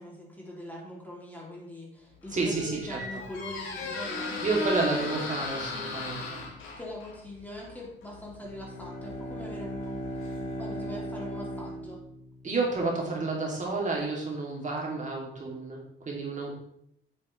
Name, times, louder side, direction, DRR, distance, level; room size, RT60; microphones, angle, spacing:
voice 1, 0.0-5.1 6.8-10.0 10.6-12.0, left 1 dB, 10° left, -3 dB, 2.9 m, -42 dB
Squeak, 2.1-10.9, left 3 dB, 90° left, 2.3 m, -38 dB
voice 2, 2.3-3.2 4.4-6.4 12.4-16.5, right 3 dB, 40° right, -2 dB, 2.9 m, -30 dB
Bowed string instrument, 8.3-12.7, equal, 65° left, 3.7 m, -37 dB
8.9 x 7.9 x 3.3 m, 0.71 s
cardioid pair, 90°, 20 cm